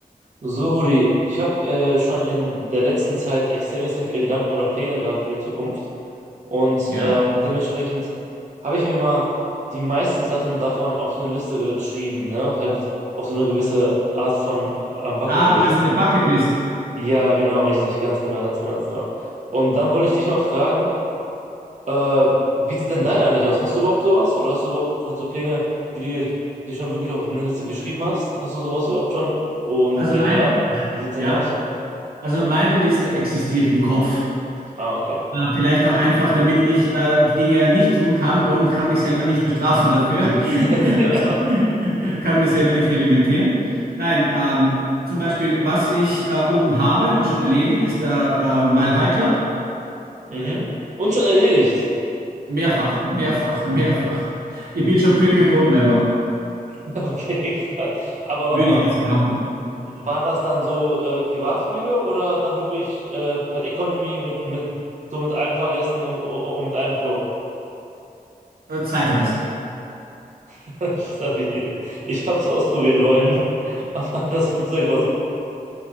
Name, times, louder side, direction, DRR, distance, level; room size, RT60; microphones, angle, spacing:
voice 1, 0.4-5.7 6.5-8.1 8.6-9.3 9.7-12.7 13.1-15.6 16.9-19.0 19.5-20.9 21.9-25.7 25.9-26.3 26.7-29.4 29.7-30.5 30.9-31.5 34.8-35.2 40.5-41.3 50.3-50.7 51.0-51.8 56.9-58.8 59.9-64.7 65.1-67.2 70.5-75.1, equal, 50° right, -8 dB, 0.9 m, -22 dB
voice 2, 15.3-16.5 30.0-30.8 31.2-31.4 32.2-34.2 35.3-43.5 44.0-44.8 45.1-49.3 52.5-54.2 54.5-56.0 58.5-59.4 68.7-69.3, equal, 90° right, -9 dB, 1.0 m, -19 dB
6.1 x 3.1 x 2.5 m, 2.8 s
wide cardioid pair, 80°, 15 cm